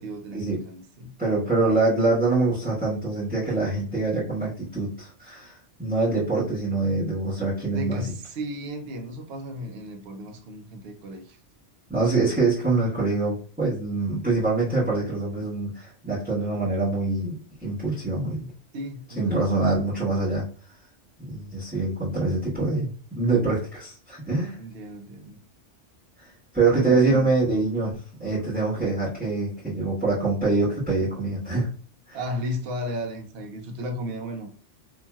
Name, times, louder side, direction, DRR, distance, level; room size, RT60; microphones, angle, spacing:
voice 1, 0.0-1.1 7.7-11.4 18.7-19.9 24.6-25.4 26.6-27.3 32.1-34.5, equal, 65° right, 0.8 m, -35 dB
voice 2, 1.2-5.5 5.8-8.1 11.9-18.5 19.2-20.4 21.2-24.5 26.5-31.7 32.1-32.2, right 3 dB, 10° right, 1.2 m, -24 dB
2.9 x 2.7 x 2.2 m
omnidirectional pair, 1.2 m